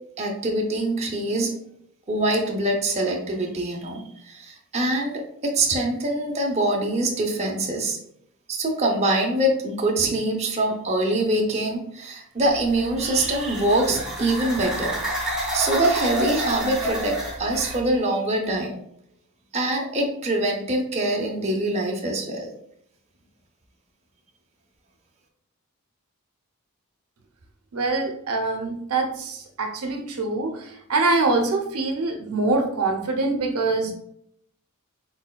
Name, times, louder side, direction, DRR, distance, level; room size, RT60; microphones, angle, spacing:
voice 1, 0.2-1.5 2.1-8.0 8.5-14.9 15.5-18.8 19.5-22.5, right 1 dB, 30° right, 1 dB, 0.6 m, -24 dB
sound 1, 12.5-17.8, right 1 dB, 5° right, 1.1 m, -29 dB
voice 2, 27.7-33.9, right 3 dB, 80° right, 4 dB, 0.7 m, -24 dB
4.2 x 4.0 x 2.2 m, 0.71 s
head